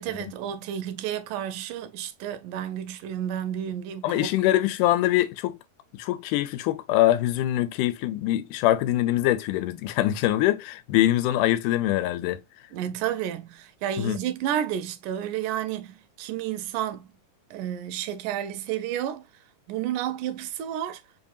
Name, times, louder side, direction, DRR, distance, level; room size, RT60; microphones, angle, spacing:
voice 1, 0.0-4.3 12.7-17.1 17.5-19.2 19.7-21.0, right 10 dB, 85° right, 2.1 m, -31 dB
voice 2, 4.0-5.6 5.9-12.4 14.0-14.2, left 14 dB, 90° left, 2.1 m, -23 dB
5.5 x 2.7 x 2.3 m
omnidirectional pair, 3.6 m